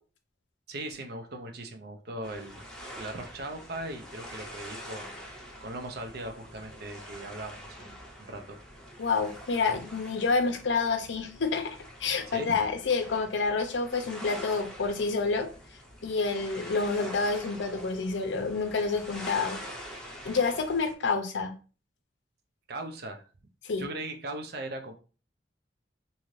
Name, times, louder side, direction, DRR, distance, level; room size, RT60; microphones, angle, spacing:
voice 1, 0.7-2.6 2.9-5.2 5.6-8.6 12.3-12.6 22.7-23.3 23.8-24.9, right 1 dB, 60° right, 5 dB, 0.6 m, -39 dB
sound 1, 2.2-20.9, equal, 5° left, 0.6 m, -45 dB
voice 2, 9.0-11.8 12.0-15.5 16.0-19.6 20.2-21.5 23.6-23.8, left 4 dB, 80° left, 6 dB, 0.6 m, -28 dB
2.7 x 2.5 x 3.1 m, 0.36 s
head